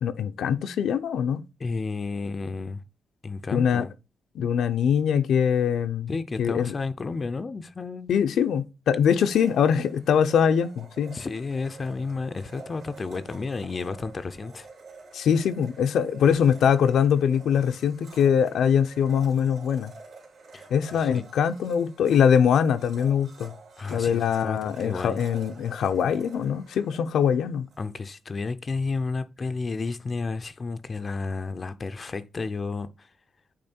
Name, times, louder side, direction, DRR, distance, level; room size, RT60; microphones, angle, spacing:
voice 1, 0.0-1.4 3.5-3.9 4.3-6.7 8.1-11.2 15.1-19.9 20.7-23.5 23.9-27.7, left 8 dB, 90° left, 0.6 m, -23 dB
voice 2, 1.6-2.8 3.2-3.9 6.1-8.1 11.1-14.7 20.5-20.7 21.0-21.2 23.8-25.2 27.8-33.1, left 4 dB, 30° left, 0.4 m, -32 dB
Domestic sounds home sounds, 9.1-27.9, right 4 dB, 70° right, 2.6 m, -48 dB
8.7 x 3.1 x 4.3 m
wide cardioid pair, 140°, 0 cm